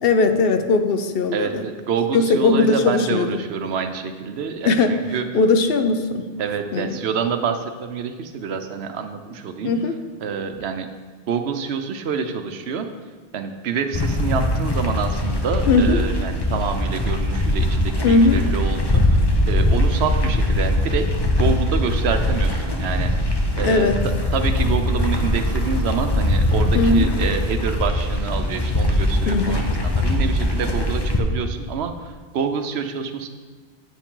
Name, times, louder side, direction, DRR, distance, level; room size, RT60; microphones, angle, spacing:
voice 1, 0.0-1.7 2.1-3.4 4.6-5.0 5.3-6.3 6.7-7.0 9.6-10.0 15.7-16.0 18.0-18.4 23.6-24.0 26.7-27.2 29.2-29.6, left 3 dB, 65° left, 8 dB, 0.8 m, -19 dB
voice 2, 1.3-5.2 6.4-9.7 10.2-10.9 11.3-12.9 13.3-21.1 21.4-23.1 23.6-23.9 24.3-33.3, right 6 dB, 75° right, 7 dB, 0.9 m, -27 dB
sound 1, 13.9-31.2, left 1 dB, 25° left, 0.8 m, -21 dB
9.2 x 7.2 x 3.8 m, 1.4 s
omnidirectional pair, 1.1 m